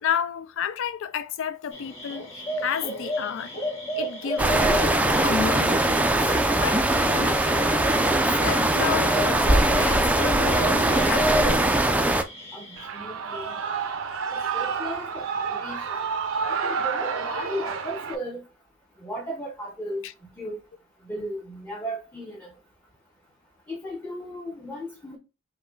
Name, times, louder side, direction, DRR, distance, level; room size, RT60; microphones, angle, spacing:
voice 1, 0.0-3.6 4.0-4.8 5.2-6.2 6.6-7.8 8.4-11.6 20.0-20.1, left 7 dB, 65° left, 0.4 m, -31 dB
sound 1, 1.7-12.9, right 1 dB, 35° left, 2.3 m, -32 dB
sound 2, 4.4-12.2, right 1 dB, 5° right, 0.3 m, -21 dB
Shout / Cheering, 12.8-18.2, right 6 dB, 75° right, 0.5 m, -29 dB
voice 2, 12.9-13.6 14.3-16.0 16.6-18.4 19.0-20.0 20.4-20.6 21.1-22.5 23.7-25.2, equal, 10° left, 0.7 m, -35 dB
5.5 x 2.2 x 3.6 m
head